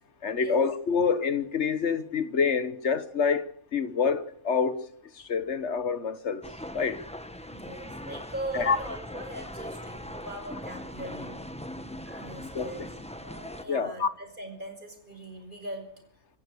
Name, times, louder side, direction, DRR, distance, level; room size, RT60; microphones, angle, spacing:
voice 1, 0.2-4.8 5.3-6.4 6.7-7.0 8.5-8.8 12.5-12.7 13.7-14.1, left 5 dB, 55° left, 1.4 m, -27 dB
sound 1, 6.4-13.7, equal, 5° left, 1.3 m, -40 dB
voice 2, 7.5-11.4 12.0-12.9 13.2-15.8, right 1 dB, 35° right, 5.6 m, -40 dB
25.5 x 15.0 x 8.5 m
omnidirectional pair, 1.5 m